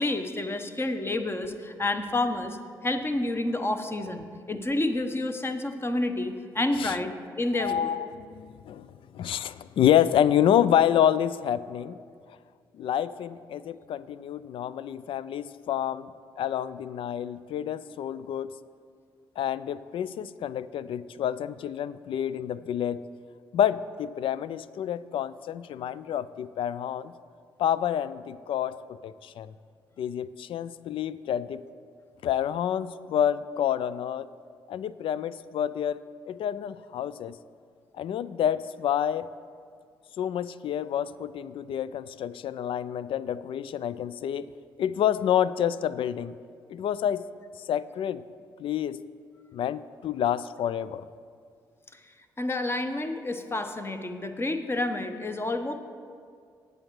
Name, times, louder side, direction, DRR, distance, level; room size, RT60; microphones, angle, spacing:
voice 1, 0.0-2.6 2.8-7.9 52.4-55.7, left 2 dB, 20° left, 8 dB, 1.0 m, -29 dB
voice 2, 7.6-8.9 9.1-12.0 12.8-16.1 16.4-18.5 19.4-23.0 23.5-27.1 27.6-29.5 30.0-31.6 32.2-34.3 34.7-36.0 36.3-37.4 38.0-39.3 40.2-44.5 44.8-46.4 46.7-47.2 47.7-48.2 48.6-49.0 49.5-51.0, left 10 dB, 55° left, 17 dB, 0.4 m, -28 dB
18.5 x 6.7 x 3.1 m, 2.2 s
figure-of-eight pair, 40°, 11 cm